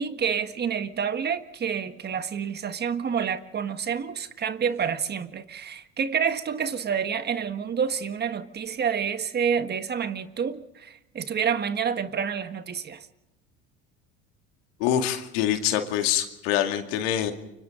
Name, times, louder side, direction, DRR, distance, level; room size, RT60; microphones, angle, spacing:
voice 1, 0.0-13.1, right 7 dB, 35° right, 1.5 m, -28 dB
voice 2, 14.8-17.3, left 10 dB, 85° left, 2.3 m, -25 dB
29.5 x 25.0 x 3.9 m
supercardioid pair, 90°, 29 cm